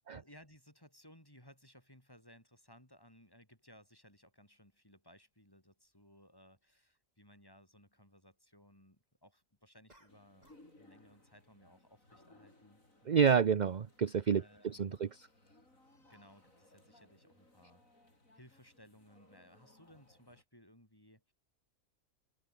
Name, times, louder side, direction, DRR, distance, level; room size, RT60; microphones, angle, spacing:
voice 1, 0.1-13.3 14.4-15.0 16.0-17.8 18.3-21.3, equal, 15° left, 7.6 m, -61 dB
sound 1, 5.8-5.9 9.9-10.8 11.0-11.4, right 1 dB, 25° right, 5.8 m, -66 dB
sound 2, 10.1-20.4, left 1 dB, 65° left, 8.0 m, -65 dB
voice 2, 13.1-15.3, right 7 dB, 40° right, 0.6 m, -29 dB
omnidirectional pair, 1.5 m